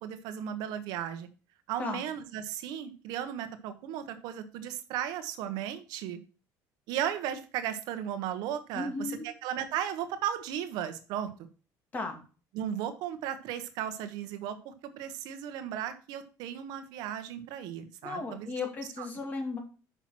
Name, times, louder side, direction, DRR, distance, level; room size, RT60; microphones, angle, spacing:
voice 1, 0.0-1.3 1.7-6.2 6.9-11.3 12.5-18.6 19.0-19.1, right 10 dB, 75° right, 10 dB, 1.1 m, -35 dB
voice 2, 8.7-9.3 11.9-12.2 18.0-19.6, left 3 dB, 25° left, 3 dB, 2.4 m, -35 dB
6.1 x 5.8 x 5.9 m, 0.35 s
cardioid pair, 145°, 7 cm